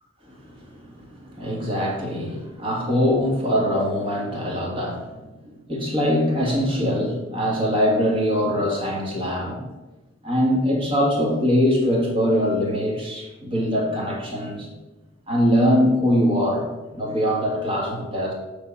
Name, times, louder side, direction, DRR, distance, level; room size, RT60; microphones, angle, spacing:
voice 1, 0.2-9.6 10.2-14.7 15.3-18.3, equal, 25° right, -2 dB, 1.6 m, -23 dB
7.7 x 3.7 x 5.5 m, 1.1 s
head